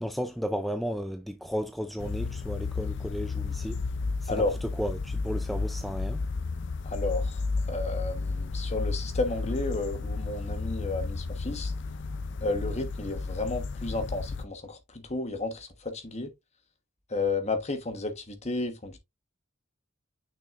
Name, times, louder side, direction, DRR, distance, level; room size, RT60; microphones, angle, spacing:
voice 1, 0.0-3.8 4.2-6.2, equal, ahead, 0.4 m, -34 dB
sound 1, 2.0-14.5, left 3 dB, 60° left, 0.5 m, -32 dB
voice 2, 6.8-7.4 7.7-11.7 12.4-16.3 17.1-19.0, left 3 dB, 35° left, 1.3 m, -32 dB
6.2 x 6.2 x 2.5 m
head